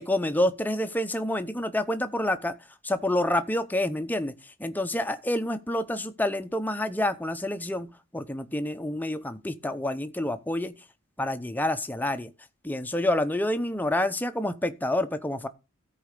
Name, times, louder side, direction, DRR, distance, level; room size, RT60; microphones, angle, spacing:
voice 1, 0.0-2.5 2.8-4.3 4.6-10.8 11.2-12.3 12.6-15.5, left 1 dB, 10° left, 0.7 m, -28 dB
13.5 x 4.8 x 6.6 m
head